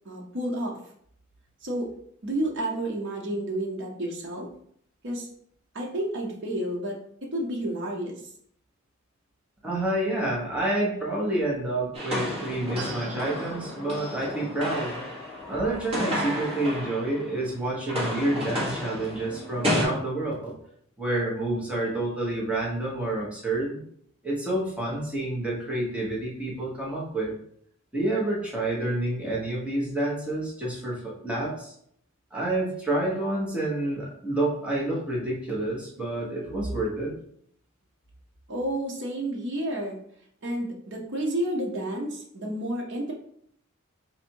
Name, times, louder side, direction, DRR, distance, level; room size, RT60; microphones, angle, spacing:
voice 1, 0.0-0.8 1.6-1.9 2.2-4.5 5.0-5.3 5.7-8.3 38.5-40.0 40.4-43.1, right 1 dB, 65° right, -1 dB, 0.8 m, -30 dB
voice 2, 9.6-15.0 15.5-20.5 21.0-23.8 24.2-27.3 27.9-31.7 32.3-37.1, right 1 dB, 5° right, -5 dB, 1.1 m, -28 dB
sound 1, 11.9-17.4 17.7-19.9, equal, 30° right, 1.5 m, -31 dB
4.1 x 2.6 x 4.5 m, 0.67 s
head